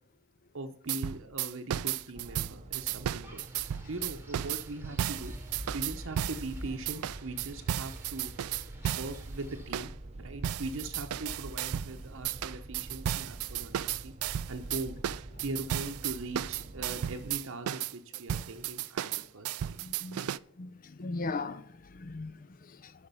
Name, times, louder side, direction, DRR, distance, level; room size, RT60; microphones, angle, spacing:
voice 1, 0.5-3.4 3.9-5.3 5.7-8.3 8.9-9.9 10.2-14.1 14.5-15.0 15.4-19.8 20.1-20.3, right 2 dB, 60° right, 0.8 m, -40 dB
sound 1, 0.9-6.5 6.9-9.2 9.7-9.9 10.4-11.9 12.2-20.4, right 11 dB, 75° right, 0.3 m, -34 dB
sound 2, 2.1-17.3, right 1 dB, 30° right, 0.7 m, -47 dB
Wind, 3.2-9.8, right 1 dB, 10° right, 1.3 m, -47 dB
voice 2, 19.8-20.2 20.6-22.9, left 3 dB, 40° left, 0.5 m, -39 dB
12.0 x 5.1 x 5.6 m
head